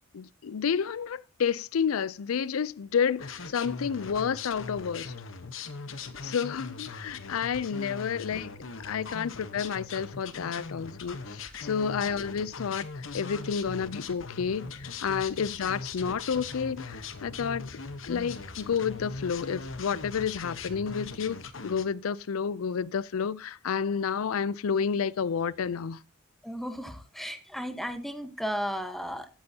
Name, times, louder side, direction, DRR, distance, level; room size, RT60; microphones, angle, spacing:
voice 1, 0.1-5.1 6.2-8.5 8.8-17.7 18.0-26.0, left 6 dB, 85° left, 0.5 m, -30 dB
sound 1, 3.2-21.9, left 4 dB, 65° left, 1.1 m, -40 dB
sound 2, 6.7-6.9 7.4-21.7, left 1 dB, 20° left, 6.2 m, -54 dB
voice 2, 26.4-29.3, equal, ahead, 1.1 m, -34 dB
16.0 x 8.9 x 2.8 m
head